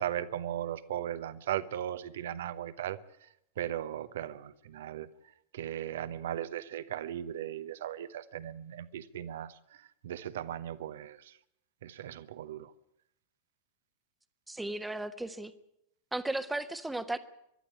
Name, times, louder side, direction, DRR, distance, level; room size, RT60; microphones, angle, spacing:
voice 1, 0.0-3.3 3.6-5.1 5.5-11.4 11.8-12.7, right 11 dB, 60° right, 14 dB, 1.0 m, -37 dB
voice 2, 14.5-15.5 16.1-17.2, right 2 dB, 5° right, 10 dB, 1.3 m, -35 dB
23.5 x 12.0 x 9.7 m, 0.79 s
figure-of-eight pair, 90°, 0 cm